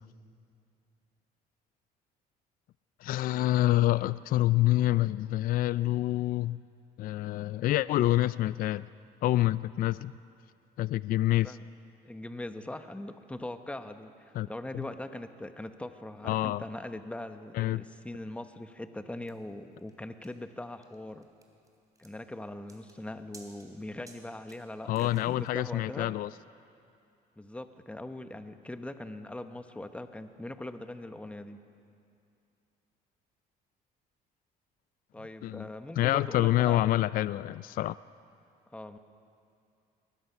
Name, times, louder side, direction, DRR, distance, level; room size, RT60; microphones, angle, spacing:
voice 1, 3.0-6.6 7.0-8.9 9.2-10.1 10.8-11.6 14.3-14.5 14.7-14.8 16.2-16.6 17.5-17.8 24.9-26.3 35.4-35.7 36.0-38.0, left 15 dB, 55° left, 17 dB, 0.4 m, -27 dB
voice 2, 12.0-21.3 22.0-26.1 27.4-31.6 35.1-37.1 38.7-39.0, left 1 dB, 5° left, 8 dB, 1.0 m, -41 dB
sound 1, 19.3-25.5, right 3 dB, 20° right, 3.2 m, -58 dB
22.0 x 20.5 x 5.8 m, 2.5 s
cardioid pair, 110°, 17 cm